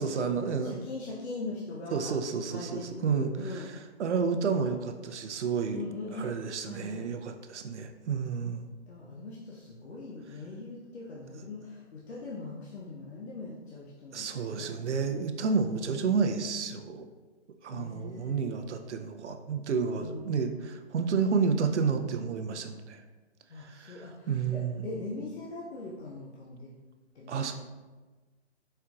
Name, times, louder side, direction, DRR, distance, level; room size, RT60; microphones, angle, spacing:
voice 1, 0.0-0.8 1.9-3.6 4.0-5.8 6.2-8.7 14.1-17.1 17.6-23.0 23.6-24.0 24.3-24.9 27.3-27.5, right 5 dB, 75° right, 6 dB, 0.5 m, -30 dB
voice 2, 0.6-2.1 2.5-3.7 5.7-6.3 6.6-7.0 8.5-8.6 8.9-14.8 15.6-16.1 17.7-18.4 20.0-20.5 23.5-26.7 27.1-27.5, left 3 dB, 65° left, -5 dB, 0.7 m, -41 dB
4.4 x 3.7 x 2.3 m, 1.3 s
hypercardioid pair, 175°, 35 cm